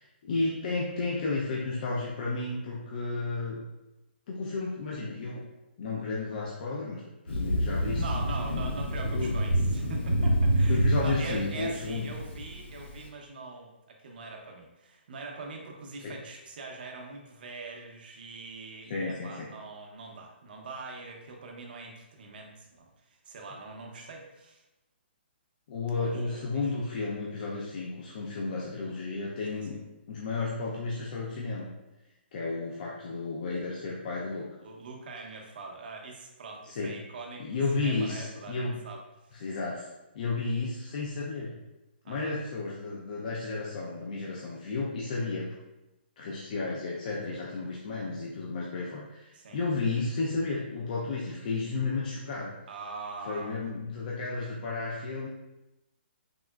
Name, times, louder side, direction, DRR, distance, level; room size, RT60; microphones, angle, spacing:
voice 1, 0.3-3.6 4.3-5.4 5.8-8.0 9.0-9.3 10.7-12.1 16.0-16.2 18.9-19.5 25.7-29.8 30.1-31.7 32.3-34.4 36.6-36.9 37.4-38.8 39.3-39.9 40.1-41.5 42.1-45.4 46.2-52.5 53.3-55.3, left 3 dB, 45° left, -4 dB, 0.4 m, -32 dB
Thunder, 7.3-13.0, right 1 dB, 85° left, 0.6 m, -27 dB
voice 2, 8.0-24.6 26.0-26.7 29.5-29.7 34.6-39.3 42.0-42.4 49.3-49.6 52.7-53.6, right 3 dB, 55° right, 1 dB, 0.6 m, -42 dB
3.6 x 2.0 x 2.2 m, 0.98 s
hypercardioid pair, 155°, 6 cm